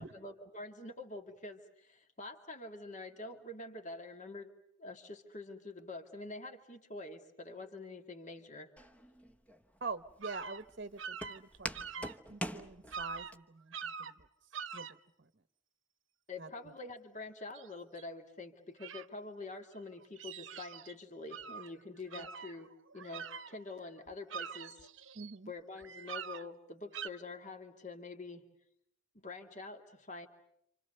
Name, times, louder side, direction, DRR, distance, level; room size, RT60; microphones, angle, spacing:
voice 1, 0.0-4.5 4.8-8.7 16.3-24.9 25.5-28.4 29.2-30.3, left 3 dB, 35° left, 5 dB, 2.3 m, -46 dB
Walk footsteps, 8.8-13.4, equal, 5° left, 1.1 m, -44 dB
voice 2, 9.8-14.3 14.7-15.3 16.4-16.7 22.2-22.3 25.1-25.5, right 4 dB, 50° right, 11 dB, 1.0 m, -46 dB
sound 1, 10.2-10.6 11.0-12.2 12.6-12.7 12.9-13.3 13.7-14.2 14.5-14.9 17.5-17.7 18.0-18.1 18.8-19.0 19.8-20.9 21.3-21.7 22.1-23.8 24.1-25.3 25.8-26.4 26.9-27.1, right 6 dB, 70° right, 1.0 m, -44 dB
28.5 x 27.5 x 6.7 m, 0.75 s
head